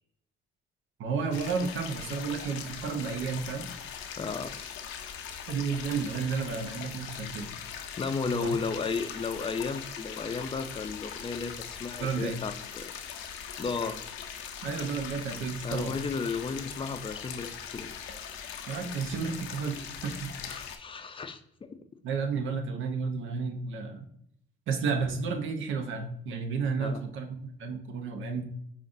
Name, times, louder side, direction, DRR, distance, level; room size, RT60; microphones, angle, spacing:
voice 1, 1.0-3.7 5.5-7.5 8.3-8.5 12.0-12.4 14.6-15.9 18.7-20.3 22.0-24.0 24.7-28.4, right 5 dB, 80° right, 5 dB, 0.7 m, -32 dB
sound 1, 1.3-20.8, left 8 dB, 85° left, 0.5 m, -41 dB
voice 2, 4.2-4.5 8.0-12.9 13.6-14.0 15.6-17.9 20.5-21.8 26.8-27.0, left 4 dB, 25° left, 8 dB, 0.4 m, -34 dB
5.2 x 2.5 x 2.5 m, 0.70 s
cardioid pair, 90°, 20 cm